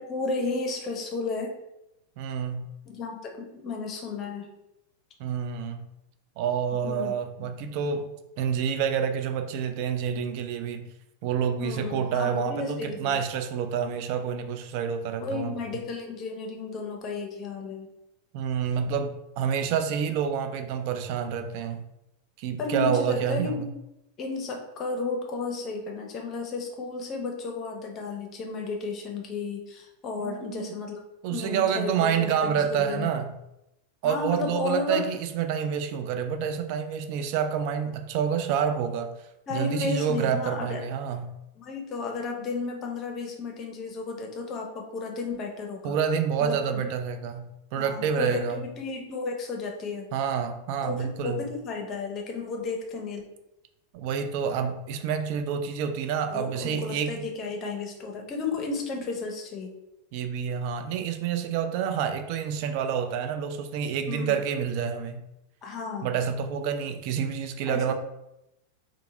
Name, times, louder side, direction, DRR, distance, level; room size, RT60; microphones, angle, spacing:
voice 1, 0.0-1.5 2.9-4.5 6.8-7.1 7.4-7.5 11.6-13.2 15.2-17.9 22.6-23.7 24.2-31.0 31.3-33.1 34.0-35.0 39.5-40.8 41.6-46.0 46.4-46.9 47.8-50.1 50.8-53.2 56.3-59.7 64.1-64.4 65.6-66.1 67.7-67.9, left 4 dB, 30° left, 1 dB, 0.7 m, -33 dB
voice 2, 2.2-2.7 5.2-5.9 6.4-8.1 8.4-10.9 11.2-15.5 18.3-21.8 22.4-23.7 30.2-30.7 31.2-33.3 34.0-39.1 39.5-41.4 45.8-48.7 50.1-51.4 53.9-57.2 60.1-65.2 66.0-67.9, right 7 dB, 45° right, 7 dB, 0.4 m, -28 dB
2.8 x 2.5 x 3.6 m, 0.88 s
figure-of-eight pair, 90°, 0 cm